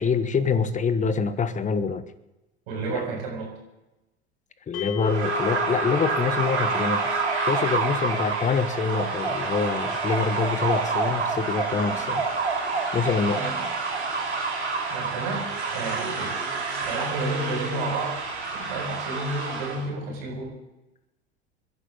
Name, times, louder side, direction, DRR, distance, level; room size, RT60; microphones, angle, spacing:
voice 1, 0.0-2.1 4.7-7.2 7.5-12.3 12.9-13.4, left 5 dB, 20° left, 14 dB, 1.2 m, -25 dB
voice 2, 2.7-3.5 13.3-13.7 14.9-16.3 16.7-18.2 18.5-20.6, right 2 dB, 60° right, -2 dB, 7.3 m, -31 dB
sound 1, 4.7-15.0, left 13 dB, 45° left, 1.5 m, -40 dB
sound 2, 5.0-19.8, right 4 dB, 80° right, 3.3 m, -28 dB
28.0 x 11.5 x 4.0 m, 0.99 s
figure-of-eight pair, 75°, 33 cm